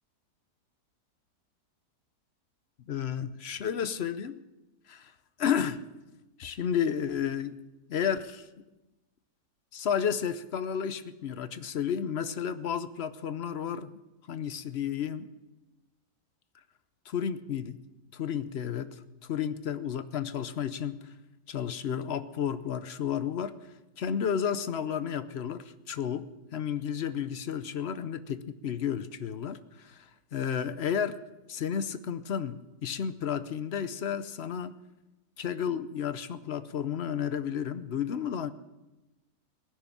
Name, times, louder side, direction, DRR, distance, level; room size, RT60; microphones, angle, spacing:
voice 1, 2.9-4.4 4.9-5.1 5.4-5.9 6.4-7.6 7.9-8.5 9.7-14.0 14.3-15.3 17.1-17.8 18.1-21.1 21.5-23.5 24.0-31.2 31.5-34.8 35.4-38.5, left 8 dB, 55° left, 12 dB, 0.8 m, -32 dB
19.5 x 6.6 x 9.9 m, 1.1 s
omnidirectional pair, 1.7 m